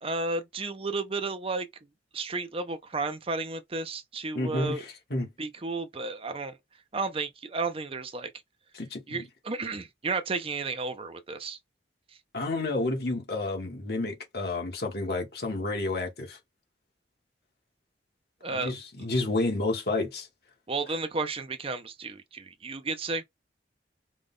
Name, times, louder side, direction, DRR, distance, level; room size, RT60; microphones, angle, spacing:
voice 1, 0.0-1.7 2.1-4.8 5.4-6.6 6.9-8.3 9.1-11.6 18.4-18.7 20.7-23.2, right 3 dB, 30° right, 0.6 m, -32 dB
voice 2, 4.3-5.3 8.7-9.2 12.3-16.4 18.5-20.3, left 2 dB, 60° left, 1.6 m, -30 dB
5.0 x 2.4 x 3.7 m
head